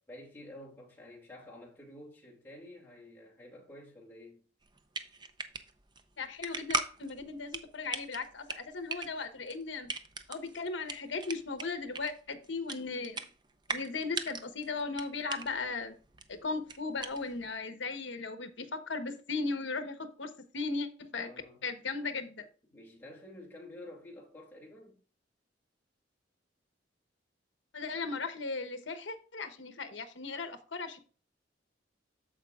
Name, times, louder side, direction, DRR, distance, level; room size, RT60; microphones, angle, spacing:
voice 1, 0.1-4.4 21.1-21.6 22.7-25.0, left 1 dB, 10° left, 2.5 m, -50 dB
sound 1, 4.6-17.6, right 3 dB, 25° right, 0.6 m, -41 dB
voice 2, 6.2-9.9 10.3-13.2 13.7-16.0 16.3-21.3 21.6-22.5 27.7-31.0, left 4 dB, 70° left, 1.1 m, -37 dB
14.0 x 4.9 x 2.4 m
head